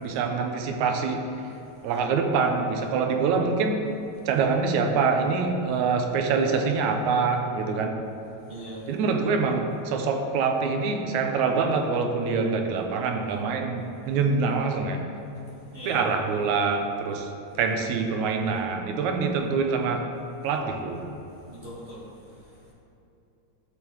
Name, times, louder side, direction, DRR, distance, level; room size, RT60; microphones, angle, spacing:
voice 1, 0.0-1.3 1.8-3.9 4.3-8.1 8.9-15.1 15.9-17.3 17.6-20.1 20.4-21.1, right 4 dB, 80° right, 4 dB, 2.0 m, -25 dB
voice 2, 8.5-8.8 15.7-16.0 21.5-22.0, right 1 dB, 30° right, -8 dB, 1.2 m, -39 dB
12.0 x 6.6 x 3.1 m, 2.9 s
omnidirectional pair, 3.4 m